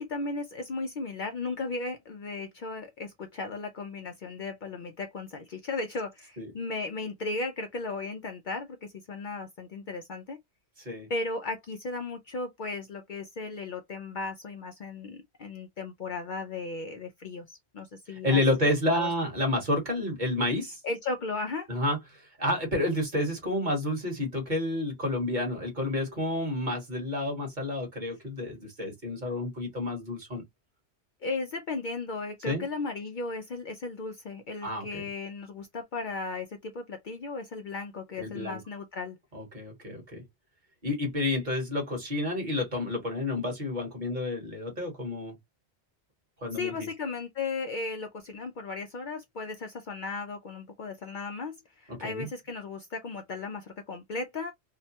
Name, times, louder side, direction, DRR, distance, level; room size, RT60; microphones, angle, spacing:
voice 1, 0.0-10.4 11.1-18.4 18.9-19.1 20.8-21.7 31.2-39.2 46.5-54.5, left 3 dB, 60° left, 0.6 m, -36 dB
voice 2, 10.8-11.1 18.1-20.8 21.7-30.4 32.4-32.6 34.6-35.1 38.2-38.6 39.3-40.2 40.8-45.4 46.4-46.9 51.9-52.3, left 1 dB, 45° right, 1.4 m, -30 dB
2.9 x 2.1 x 2.7 m
omnidirectional pair, 1.1 m